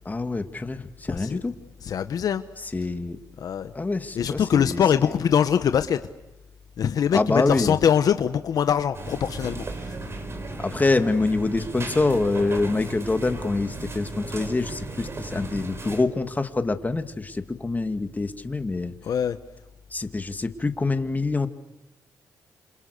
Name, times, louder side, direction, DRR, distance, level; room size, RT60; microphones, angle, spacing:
voice 1, 0.1-1.5 2.7-3.2 3.7-5.1 7.1-7.8 10.6-18.9 19.9-21.5, left 3 dB, 25° left, 8 dB, 2.3 m, -25 dB
voice 2, 1.8-2.4 3.4-3.7 4.1-6.0 6.8-9.6 19.0-19.4, left 8 dB, 65° left, 10 dB, 1.1 m, -23 dB
sound 1, 8.9-16.0, right 2 dB, 40° right, 5.0 m, -35 dB
27.5 x 27.5 x 6.8 m, 1.0 s
cardioid pair, 70°, 7 cm